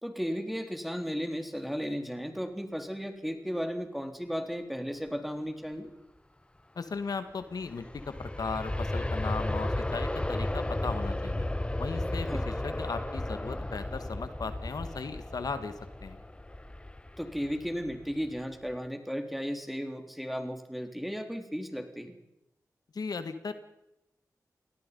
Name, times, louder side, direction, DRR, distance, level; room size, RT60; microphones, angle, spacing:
voice 1, 0.0-5.9 12.3-12.5 17.2-22.1, equal, ahead, 5 dB, 3.7 m, -35 dB
voice 2, 6.7-11.4 11.8-15.7 16.0-16.2 22.9-23.5, left 4 dB, 75° left, 10 dB, 1.6 m, -37 dB
Aircraft, 7.4-18.3 18.7-18.8, left 1 dB, 15° left, 1.1 m, -34 dB
28.5 x 18.5 x 5.5 m, 0.88 s
cardioid pair, 55°, 7 cm